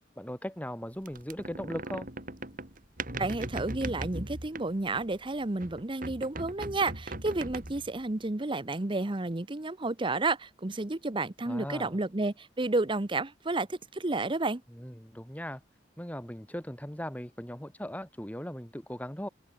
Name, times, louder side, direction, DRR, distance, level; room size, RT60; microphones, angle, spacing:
voice 1, 0.2-2.1 11.5-12.0 14.8-15.6 16.0-19.3, equal, 10° left, 4.9 m, -38 dB
sound 1, 1.1-5.2 5.6-8.0, right 2 dB, 50° right, 4.3 m, -39 dB
voice 2, 3.2-14.6, right 2 dB, 30° right, 0.9 m, -31 dB
open air
head